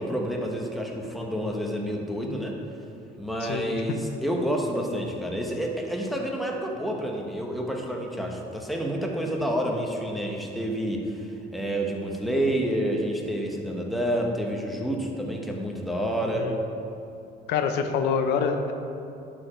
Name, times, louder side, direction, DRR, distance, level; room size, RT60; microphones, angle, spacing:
voice 1, 0.0-2.6 3.2-16.5, equal, ahead, 0 dB, 1.1 m, -29 dB
voice 2, 3.4-3.8 16.2-16.6 17.5-18.7, left 6 dB, 85° left, 6 dB, 0.7 m, -26 dB
11.5 x 5.1 x 4.4 m, 2.7 s
cardioid pair, 110°, 17 cm